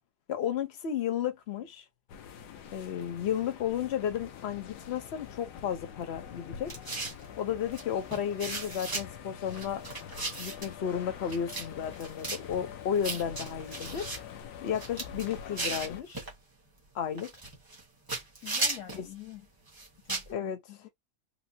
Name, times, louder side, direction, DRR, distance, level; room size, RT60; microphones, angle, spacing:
voice 1, 0.3-1.8 2.7-6.7 7.4-9.8 10.4-14.1 14.6-16.2 16.9-17.3 19.0-19.1 20.3-20.6, left 9 dB, 50° left, 0.9 m, -33 dB
sound 1, 2.1-16.0, left 8 dB, 90° left, 1.2 m, -45 dB
sound 2, 6.7-7.2 7.7-7.8 8.1-9.0 9.5-10.7 11.3-11.7 11.9-12.4 13.0-14.2 14.7-16.3 17.2-17.8 18.1-19.0 19.7-20.3, right 3 dB, 15° right, 0.9 m, -35 dB
voice 2, 18.4-19.5 20.0-20.9, left 11 dB, 70° left, 1.1 m, -46 dB
4.3 x 2.0 x 2.7 m
omnidirectional pair, 1.7 m